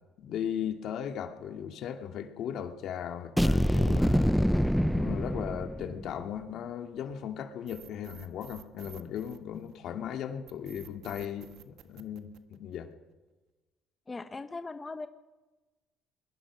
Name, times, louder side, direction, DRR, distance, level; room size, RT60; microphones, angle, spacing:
voice 1, 0.2-4.3 4.9-12.9, left 9 dB, 65° left, 6 dB, 2.3 m, -37 dB
sound 1, 3.4-6.1, equal, ahead, 0.6 m, -25 dB
sound 2, 7.7-9.9 10.5-12.9, right 11 dB, 75° right, 1.5 m, -52 dB
voice 2, 14.1-15.1, left 3 dB, 20° left, 9 dB, 0.9 m, -39 dB
21.5 x 21.5 x 6.2 m, 1.2 s
cardioid pair, 100°, 0 cm